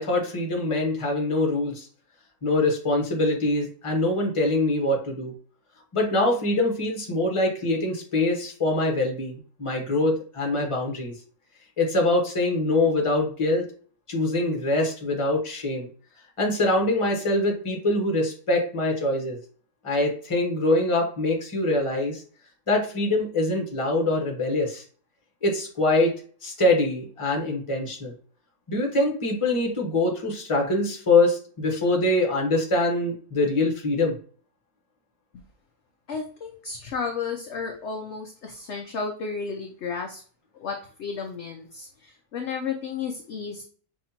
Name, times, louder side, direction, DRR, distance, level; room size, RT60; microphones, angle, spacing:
voice 1, 0.0-1.9 2.4-5.3 5.9-11.1 11.8-13.6 14.1-15.9 16.4-19.4 19.8-22.2 22.7-24.8 25.4-26.1 26.4-28.1 28.7-34.1, left 2 dB, 25° left, 1 dB, 0.9 m, -24 dB
voice 2, 36.1-40.2 40.5-43.6, left 5 dB, 65° left, 2 dB, 0.7 m, -33 dB
5.7 x 2.8 x 2.8 m, 0.43 s
omnidirectional pair, 1.8 m